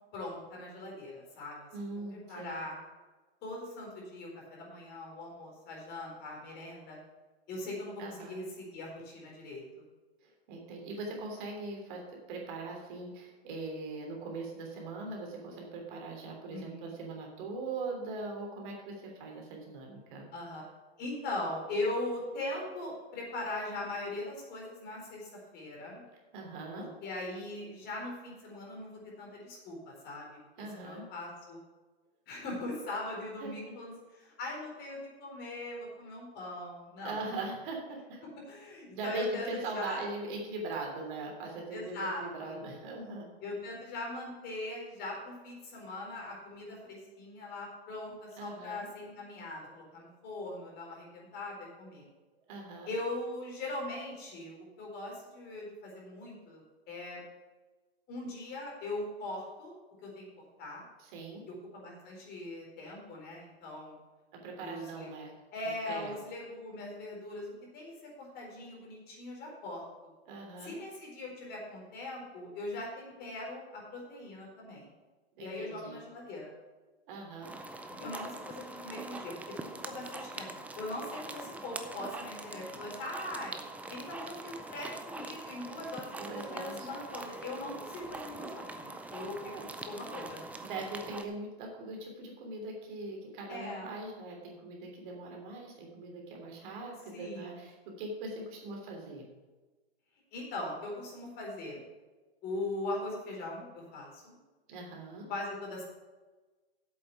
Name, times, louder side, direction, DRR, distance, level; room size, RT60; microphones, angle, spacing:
voice 1, 0.1-1.6 2.1-2.7 3.4-7.0 7.5-9.8 16.5-16.9 20.3-20.6 21.0-26.0 26.8-30.3 30.8-31.6 32.3-37.2 38.5-40.0 41.7-42.6 43.4-52.0 52.9-57.2 58.1-59.7 60.0-60.3 60.6-60.8 61.5-64.0 64.6-65.1 65.5-69.8 70.6-74.9 75.4-76.5 78.0-80.5 80.8-83.5 83.9-89.5 89.8-90.4 93.5-93.9 97.1-97.5 100.3-101.8 102.4-104.3 105.3-105.8, left 2 dB, 30° left, -2 dB, 4.1 m, -40 dB
voice 2, 1.7-2.6 8.0-8.4 10.2-20.3 26.3-26.9 30.6-31.0 33.4-33.5 37.0-38.2 38.9-43.3 48.4-48.9 52.5-52.9 61.0-61.4 64.3-65.3 65.8-66.1 70.3-70.7 75.4-76.0 77.1-77.5 86.1-86.9 89.4-89.7 90.6-99.2 104.7-105.3, right 2 dB, 50° right, 0 dB, 3.2 m, -41 dB
sound 1, 77.4-91.2, right 2 dB, 5° right, 0.4 m, -43 dB
8.2 x 7.5 x 6.9 m, 1.2 s
hypercardioid pair, 130°, 32 cm